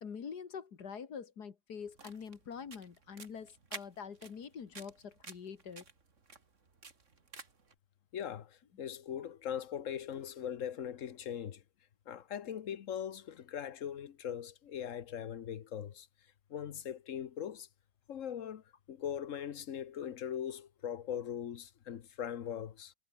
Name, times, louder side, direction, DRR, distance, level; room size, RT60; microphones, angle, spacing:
voice 1, 0.0-5.9, left 6 dB, 80° left, 2.4 m, -45 dB
sound 1, 1.8-7.7, right 4 dB, 50° right, 2.7 m, -52 dB
voice 2, 8.1-11.6 12.1-16.1 16.5-17.7 18.1-22.9, left 9 dB, 55° left, 1.2 m, -40 dB
omnidirectional pair, 1.7 m